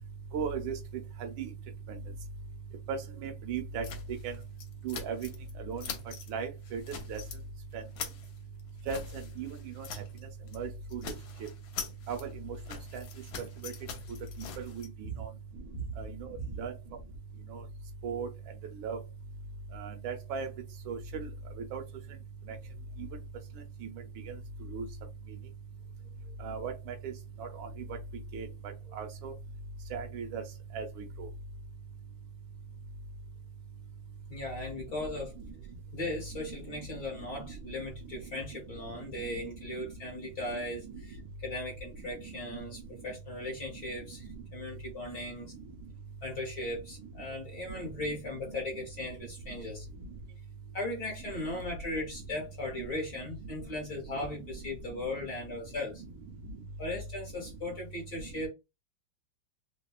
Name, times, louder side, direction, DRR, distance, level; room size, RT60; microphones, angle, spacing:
voice 1, 0.3-1.5 1.9-2.0 2.9-4.4 4.8-5.3 5.5-5.8 6.3-7.2 7.7-7.8 8.9-10.0 10.5-11.1 12.1-13.0 13.4-13.7 14.1-14.2 14.6-15.3 16.0-17.0 17.5-17.6 18.0-18.3 18.7-19.0 19.7-20.5 20.9-21.3 21.6-21.8 22.5-22.6 23.0-23.1 24.2-24.9 25.3-25.4 26.4-27.1 27.4-28.0 28.3-29.3 29.9-30.4 30.7-31.3 34.7-34.8 35.4-35.5 36.3-39.4 39.7-39.8 40.2-40.5 40.8-41.0 42.1-42.6 43.7-44.4 45.1-45.2 45.5-45.7 47.0-47.1 47.7-48.2 48.5-48.8 50.0-50.1 52.3-52.4 52.7-52.8 53.4-53.5 54.1-54.2 54.5-54.6 54.9-55.3 55.9-56.6 58.2-58.3, right 5 dB, 75° right, 1.4 m, -39 dB
sound 1, 3.8-5.5 5.8-6.3 6.6-7.4 7.7-10.2 10.5-10.6 10.9-14.9, left 6 dB, 75° left, 1.4 m, -43 dB
voice 2, 34.3-35.3 35.9-45.5 46.2-49.9 50.7-56.0 56.8-58.5, left 1 dB, 55° left, 1.2 m, -38 dB
3.5 x 2.2 x 2.2 m
omnidirectional pair, 2.4 m